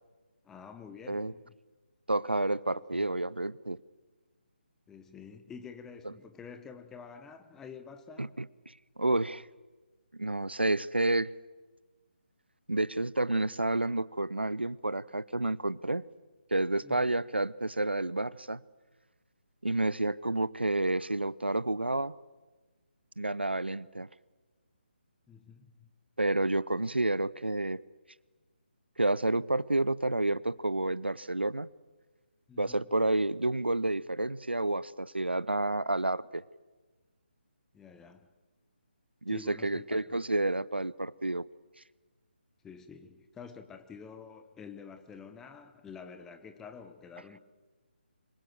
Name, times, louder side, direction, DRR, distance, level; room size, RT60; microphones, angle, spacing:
voice 1, 0.4-1.5 2.7-3.0 4.9-8.4 16.8-17.1 25.3-25.9 32.5-32.8 37.7-38.3 39.3-40.0 42.6-47.4, left 6 dB, 5° left, 1.2 m, -48 dB
voice 2, 2.1-3.8 6.0-6.1 8.2-8.5 9.0-9.4 10.1-11.3 12.7-16.0 16.5-18.6 19.6-22.2 23.2-24.1 26.2-27.8 29.0-31.7 32.6-36.4 39.2-41.5, right 2 dB, 80° right, 0.8 m, -30 dB
25.5 x 22.0 x 7.9 m
figure-of-eight pair, 145°, 6 cm